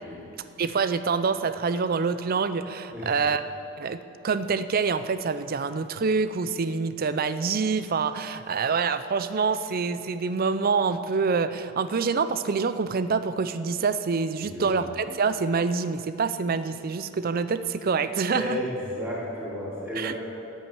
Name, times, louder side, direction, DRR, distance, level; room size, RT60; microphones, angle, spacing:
voice 1, 0.6-3.4 3.8-18.6 20.0-20.2, right 5 dB, 45° right, 12 dB, 0.4 m, -26 dB
voice 2, 14.4-14.8 18.3-20.2, left 1 dB, 10° right, -9 dB, 3.6 m, -33 dB
8.9 x 8.4 x 9.3 m, 2.7 s
head